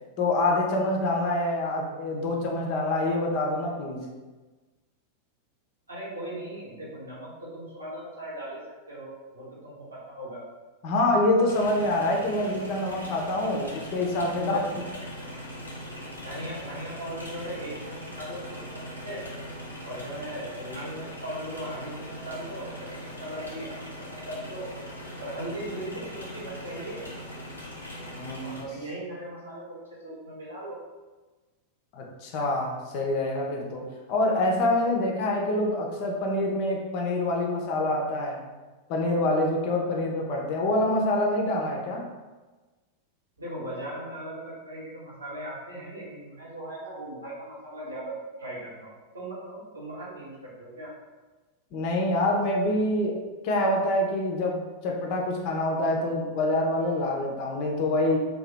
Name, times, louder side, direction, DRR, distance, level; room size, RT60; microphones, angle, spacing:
voice 1, 0.2-4.1 10.8-14.6 28.2-28.6 31.9-33.8 34.1-38.4 38.9-42.1 51.7-53.2 53.4-58.2, left 1 dB, 45° left, 0 dB, 0.6 m, -26 dB
voice 2, 5.9-8.6 8.9-10.5 14.4-14.8 16.2-18.4 18.7-19.2 19.8-24.7 25.2-27.0 28.4-29.8 30.0-30.8 43.4-50.9, right 1 dB, 75° right, -7 dB, 1.2 m, -38 dB
sound 1, 11.5-28.6, equal, 80° left, 0.7 m, -40 dB
2.7 x 2.3 x 3.4 m, 1.2 s
figure-of-eight pair, 90°, 0 cm